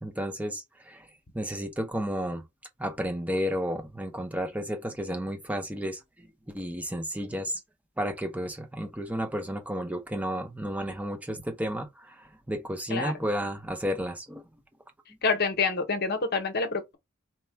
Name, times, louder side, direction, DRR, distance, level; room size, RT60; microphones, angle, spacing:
voice 1, 0.0-1.1 1.3-2.4 2.8-7.6 8.0-14.4, equal, 5° right, 0.6 m, -32 dB
voice 2, 15.2-17.0, left 4 dB, 50° left, 0.9 m, -27 dB
4.3 x 2.4 x 3.4 m
head